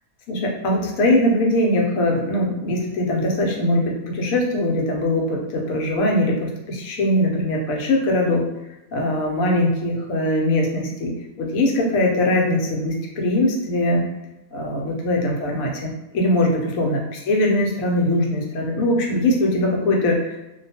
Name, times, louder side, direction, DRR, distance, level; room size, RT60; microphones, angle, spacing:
voice 1, 0.3-8.4 8.9-11.1 11.4-14.0 14.5-20.4, left 1 dB, 90° left, 0 dB, 1.0 m, -21 dB
2.4 x 2.2 x 2.7 m, 0.95 s
omnidirectional pair, 1.4 m